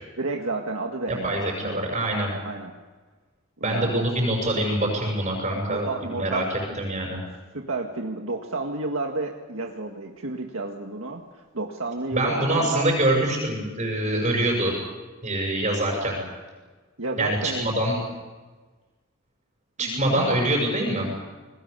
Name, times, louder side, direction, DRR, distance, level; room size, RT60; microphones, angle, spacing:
voice 1, 0.2-2.7 3.6-4.0 5.5-6.8 7.5-12.9 17.0-17.7 19.8-20.4, right 2 dB, 70° right, 2 dB, 1.8 m, -31 dB
voice 2, 1.1-2.3 3.6-6.4 6.8-7.2 12.1-14.7 15.2-16.2 17.2-18.0 19.8-21.1, right 1 dB, 35° right, -1 dB, 6.5 m, -25 dB
28.0 x 21.0 x 6.8 m, 1.3 s
head